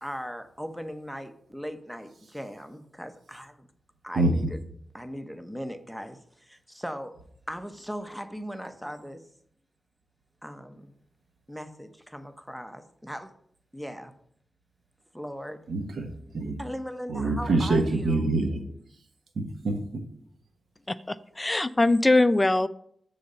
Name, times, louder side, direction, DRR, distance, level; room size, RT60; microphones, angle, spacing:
voice 1, 0.0-3.7 4.0-4.6 4.9-7.2 7.5-9.2 10.4-11.0 11.5-13.3 13.7-14.1 15.1-15.6 16.6-18.4, equal, ahead, 0.8 m, -38 dB
voice 2, 15.7-16.6 17.1-18.6 19.4-19.8, right 2 dB, 80° right, 1.2 m, -25 dB
voice 3, 20.9-22.7, left 2 dB, 20° left, 0.3 m, -22 dB
6.9 x 3.9 x 6.5 m
cardioid pair, 65°, 0 cm